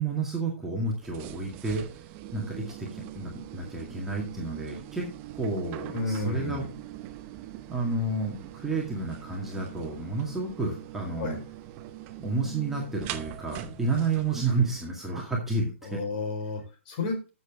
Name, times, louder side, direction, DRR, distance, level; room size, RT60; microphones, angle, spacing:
voice 1, 0.0-1.8 2.3-5.1 5.3-6.7 7.7-11.4 12.2-16.0, right 3 dB, 5° right, -3 dB, 2.0 m, -30 dB
sound 1, 1.0-14.9, right 13 dB, 30° right, 0.8 m, -43 dB
voice 2, 5.9-6.7 11.2-11.4 15.8-17.3, left 3 dB, 40° left, 4 dB, 4.5 m, -32 dB
12.5 x 7.3 x 3.6 m, 0.30 s
hypercardioid pair, 145°, 7 cm